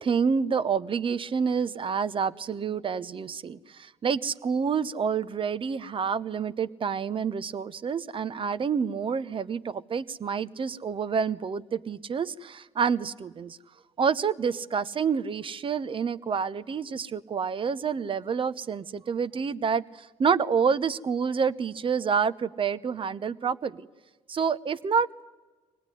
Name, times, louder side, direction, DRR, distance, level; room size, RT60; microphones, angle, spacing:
voice 1, 0.0-13.6 14.0-23.9 24.3-25.1, right 6 dB, 45° right, 15 dB, 1.0 m, -28 dB
24.5 x 19.0 x 10.0 m, 1.3 s
hypercardioid pair, 55°, 13 cm